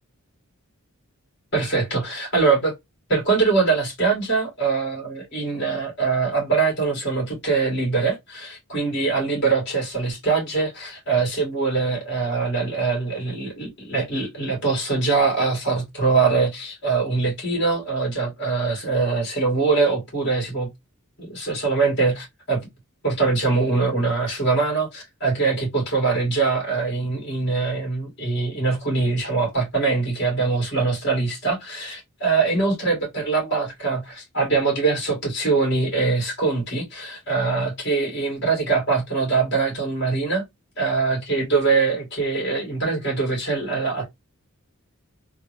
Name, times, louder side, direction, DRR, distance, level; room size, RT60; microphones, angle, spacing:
voice 1, 1.5-2.7 3.1-20.7 21.2-22.7 23.0-40.4 40.8-44.1, right 4 dB, 55° left, 2.2 m, -23 dB
3.4 x 2.2 x 3.2 m
head